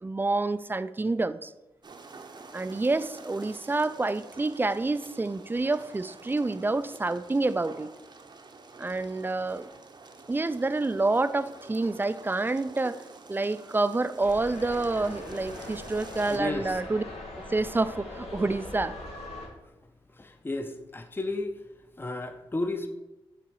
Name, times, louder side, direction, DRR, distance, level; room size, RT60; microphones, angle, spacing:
voice 1, 0.0-1.5 2.5-7.9 8.8-9.7 10.3-13.0 13.3-17.0 17.5-19.0, right 2 dB, 20° right, 0.3 m, -28 dB
sound 1, 1.8-16.4, right 4 dB, 45° right, 0.7 m, -49 dB
sound 2, 14.2-19.5, left 1 dB, 90° left, 1.5 m, -41 dB
voice 2, 16.2-16.8 20.1-21.6 22.0-22.9, left 2 dB, 20° left, 0.6 m, -33 dB
6.8 x 4.1 x 4.7 m
cardioid pair, 60°, 10 cm